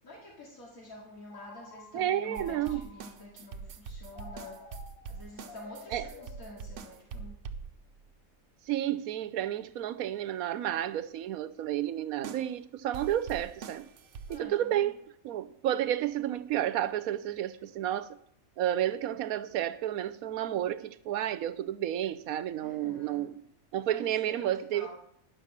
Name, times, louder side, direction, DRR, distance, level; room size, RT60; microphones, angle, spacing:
voice 1, 0.0-4.8 5.1-7.4 14.3-15.0 22.6-23.3 23.9-25.0, left 2 dB, 80° left, 2.9 m, -48 dB
Telephone, 1.3-3.3 4.1-7.2, left 4 dB, 45° left, 1.3 m, -52 dB
voice 2, 1.9-2.9 5.9-6.1 8.7-13.9 14.3-14.9 15.2-18.2 18.6-23.3 23.7-25.0, right 12 dB, 90° right, 1.1 m, -31 dB
sound 1, 2.3-8.0 12.2-12.5 12.9-14.4, right 5 dB, 65° right, 1.0 m, -43 dB
11.0 x 5.8 x 7.2 m
omnidirectional pair, 1.4 m